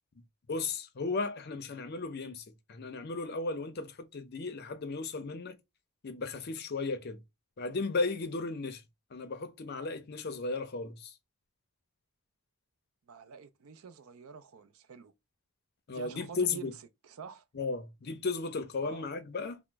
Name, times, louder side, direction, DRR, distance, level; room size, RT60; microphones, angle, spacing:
voice 1, 0.5-5.6 6.0-7.2 7.6-8.8 9.1-11.1 15.9-16.7 17.5-19.6, left 3 dB, 45° left, 0.5 m, -35 dB
voice 2, 13.1-15.1 15.9-16.7 17.0-17.4 18.8-19.1, right 6 dB, 70° right, 0.4 m, -47 dB
2.9 x 2.0 x 3.3 m
head